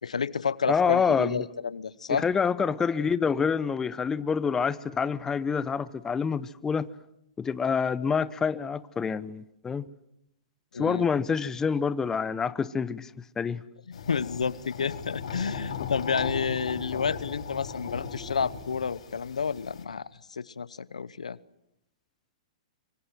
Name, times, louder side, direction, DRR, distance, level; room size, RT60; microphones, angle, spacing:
voice 1, 0.0-2.3 10.7-11.0 13.9-21.4, left 6 dB, 90° left, 0.9 m, -30 dB
voice 2, 0.7-1.4 2.1-6.9 7.4-9.9 10.8-13.1 13.4-13.6, left 6 dB, 15° left, 0.9 m, -27 dB
sound 1, 13.9-19.8, left 6 dB, 70° left, 5.3 m, -37 dB
25.5 x 25.0 x 7.7 m
hypercardioid pair, 125°, 4 cm